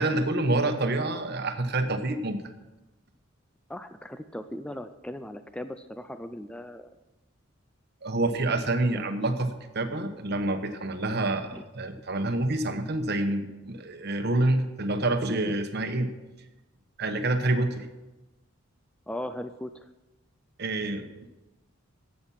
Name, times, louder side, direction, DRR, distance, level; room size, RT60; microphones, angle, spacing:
voice 1, 0.0-2.4 8.0-9.5 9.7-16.1 17.0-17.9 20.6-21.3, right 2 dB, 50° right, 7 dB, 1.1 m, -27 dB
voice 2, 3.7-7.0 8.3-8.5 8.9-9.1 11.5-11.7 15.5-15.6 19.1-19.9, left 1 dB, 5° left, 10 dB, 0.3 m, -38 dB
13.0 x 8.6 x 5.8 m, 1.1 s
head